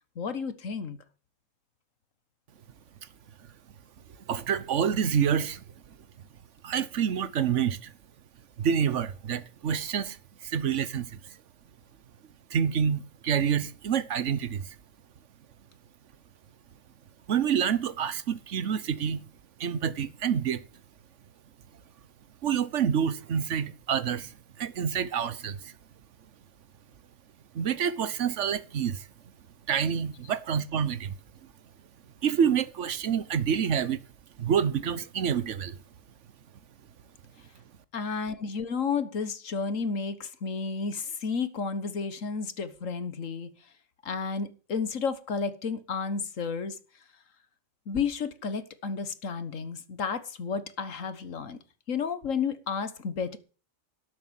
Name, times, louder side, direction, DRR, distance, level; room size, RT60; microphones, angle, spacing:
voice 1, 0.1-1.0 37.9-43.5 44.0-46.8 47.9-51.6 51.9-53.4, left 5 dB, 70° left, 1.7 m, -32 dB
voice 2, 4.3-5.6 6.6-7.9 8.6-10.2 10.4-11.2 12.5-14.7 17.3-19.2 19.6-20.6 22.4-25.7 27.5-29.1 29.7-31.1 32.2-34.0 34.4-35.8, right 8 dB, 65° right, 1.3 m, -27 dB
12.5 x 8.1 x 9.0 m
omnidirectional pair, 1.4 m